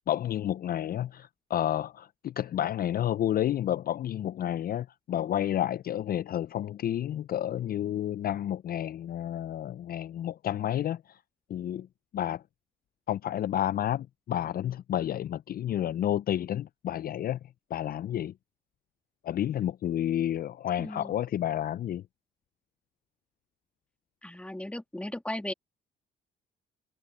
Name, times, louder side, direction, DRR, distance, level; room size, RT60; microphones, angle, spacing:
voice 1, 0.0-11.2 11.5-11.9 12.1-12.4 13.1-17.4 17.7-18.3 19.2-22.0, left 11 dB, 50° left, 0.4 m, -30 dB
voice 2, 20.8-21.2 24.2-25.5, left 1 dB, 5° left, 1.8 m, -36 dB
cardioid pair, 90°, 20 cm